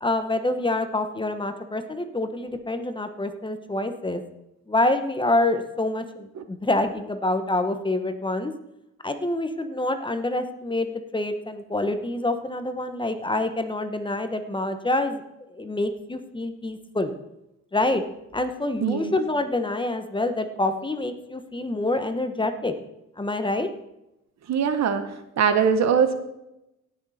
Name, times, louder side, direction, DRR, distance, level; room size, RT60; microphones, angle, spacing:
voice 1, 0.0-4.2 4.7-8.5 9.0-15.2 15.5-17.1 17.7-18.0 18.3-22.7 23.2-23.7, left 2 dB, 15° left, 8 dB, 1.0 m, -26 dB
voice 2, 18.8-19.1 24.5-25.1 25.4-26.2, right 7 dB, 60° right, 10 dB, 1.2 m, -21 dB
17.0 x 6.4 x 4.2 m, 0.89 s
cardioid pair, 90°, 30 cm